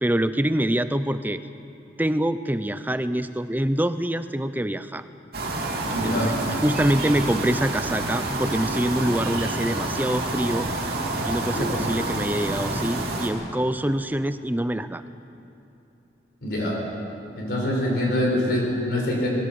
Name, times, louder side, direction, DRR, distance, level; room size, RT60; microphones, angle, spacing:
voice 1, 0.0-1.4 2.0-5.0 6.0-10.7 11.3-15.0, right 1 dB, 10° right, 12 dB, 0.5 m, -25 dB
sound 1, 5.3-13.3, right 2 dB, 55° right, 2.8 m, -28 dB
voice 2, 5.9-6.3 11.4-11.9 16.4-16.8 17.3-19.3, left 1 dB, 55° left, -2 dB, 5.0 m, -25 dB
20.5 x 16.5 x 7.8 m, 2.9 s
head